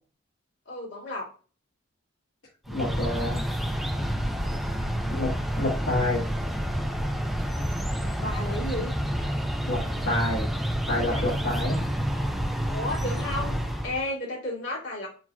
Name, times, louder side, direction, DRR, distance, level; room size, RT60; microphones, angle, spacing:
voice 1, 0.7-1.3 8.0-8.9 11.1-11.3 12.7-13.6 13.8-15.1, left 1 dB, 65° left, -4 dB, 2.5 m, -33 dB
voice 2, 2.7-3.4 5.1-6.2 9.7-10.5 10.9-11.8, left 1 dB, 80° left, -7 dB, 1.7 m, -28 dB
sound 1, 2.7-14.0, equal, ahead, 0.6 m, -29 dB
6.3 x 3.0 x 2.4 m, 0.37 s
head